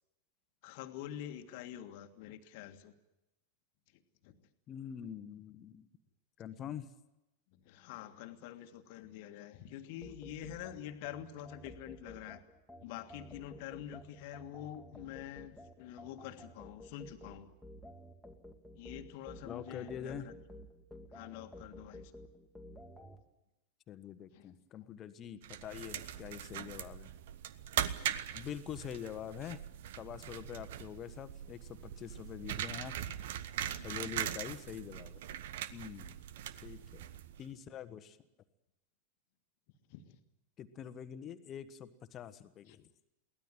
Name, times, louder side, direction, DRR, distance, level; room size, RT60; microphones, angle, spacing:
voice 1, 0.6-2.9 3.9-4.4 7.5-12.4 12.8-17.5 18.7-20.3 21.1-22.1 24.3-24.5 24.8-24.9 27.7-28.2 33.8-34.2 39.9-40.2 42.7-42.8, left 11 dB, 50° left, 8 dB, 1.7 m, -47 dB
voice 2, 4.7-5.9 6.4-6.9 19.4-20.3 23.9-27.1 28.3-29.6 30.0-32.9 33.8-35.2 35.7-36.2 36.6-37.0 37.4-38.2 40.6-42.9, left 9 dB, 30° left, 12 dB, 1.4 m, -45 dB
sound 1, 10.0-23.2, left 1 dB, ahead, 2.2 m, -52 dB
sound 2, 25.4-37.5, right 10 dB, 55° right, 1.0 m, -41 dB
23.0 x 17.5 x 9.1 m, 0.92 s
figure-of-eight pair, 90°, 0 cm